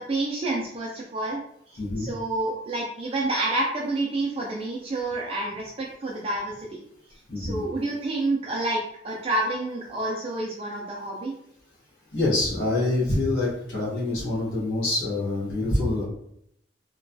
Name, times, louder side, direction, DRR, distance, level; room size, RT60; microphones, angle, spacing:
voice 1, 0.0-1.4 1.7-6.8 7.4-11.3, right 2 dB, 30° right, -3 dB, 0.3 m, -29 dB
voice 2, 1.8-2.1 7.3-7.7 12.1-16.0, left 2 dB, 70° left, -6 dB, 1.1 m, -26 dB
3.0 x 2.2 x 2.6 m, 0.72 s
head